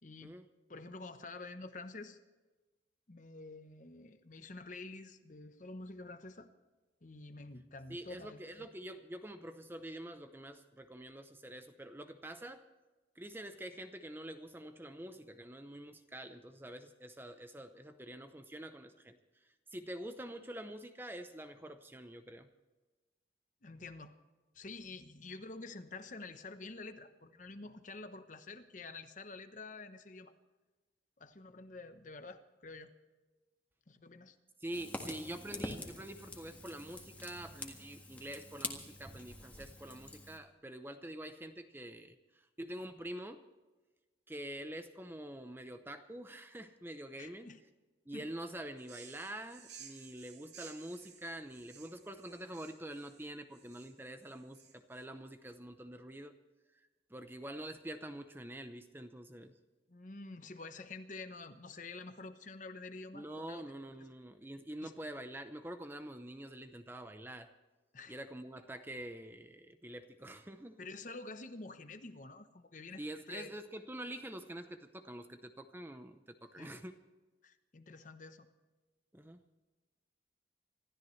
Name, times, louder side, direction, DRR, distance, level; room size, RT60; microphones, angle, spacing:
voice 1, 0.0-0.3 0.7-2.2 3.1-6.5 7.0-8.7 23.6-24.1 24.5-30.3 31.2-32.9 33.9-34.4 47.2-47.6 48.1-48.3 59.9-63.6 64.8-64.9 67.9-68.2 70.8-73.0 73.3-73.5 76.5-76.7 77.4-78.5, left 3 dB, 45° left, 9 dB, 0.9 m, -48 dB
voice 2, 7.9-12.6 13.2-19.2 19.7-22.5 34.6-43.4 44.3-47.5 48.1-56.3 57.1-59.5 63.1-67.5 68.1-70.8 73.0-77.0 79.1-79.4, right 1 dB, 10° right, 8 dB, 0.7 m, -46 dB
Fire, 34.7-40.4, left 2 dB, 10° left, 1.7 m, -46 dB
sound 1, 48.8-55.0, right 7 dB, 70° right, 2.1 m, -56 dB
26.5 x 13.5 x 3.3 m, 1.2 s
head